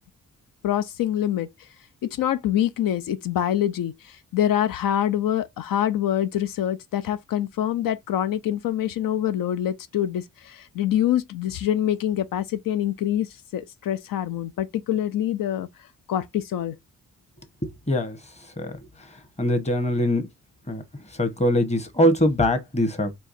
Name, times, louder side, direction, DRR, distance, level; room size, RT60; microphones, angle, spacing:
voice 1, 0.6-1.5 2.0-15.7 16.1-16.8, left 11 dB, 85° left, 0.5 m, -25 dB
voice 2, 19.4-20.3 20.7-20.8 21.2-23.1, left 1 dB, 20° left, 1.1 m, -22 dB
4.6 x 3.3 x 2.6 m
cardioid pair, 105°, 33 cm